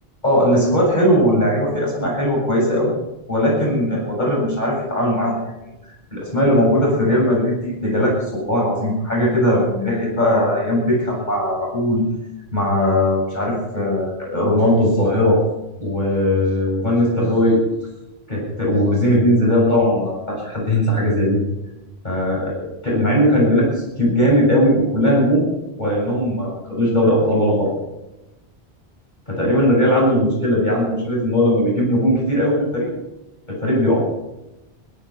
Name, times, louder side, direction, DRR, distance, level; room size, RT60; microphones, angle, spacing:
voice 1, 0.2-2.9 3.3-5.4 6.1-12.0 12.5-15.4 15.8-17.6 18.3-21.4 22.0-23.7 24.0-25.4 25.8-27.7 29.3-32.9 33.5-34.0, equal, 45° left, -4 dB, 7.7 m, -18 dB
17.0 x 13.5 x 5.9 m, 0.97 s
omnidirectional pair, 1.1 m